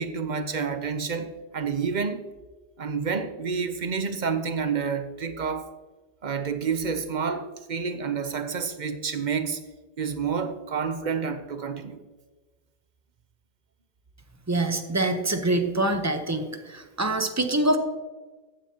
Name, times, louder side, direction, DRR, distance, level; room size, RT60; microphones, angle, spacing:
voice 1, 0.0-2.2 2.8-5.7 6.2-9.6 10.0-12.0, right 5 dB, 45° right, 9 dB, 0.8 m, -29 dB
voice 2, 14.5-17.8, right 2 dB, 15° right, 6 dB, 0.8 m, -25 dB
14.5 x 9.6 x 2.9 m, 1.3 s
omnidirectional pair, 1.2 m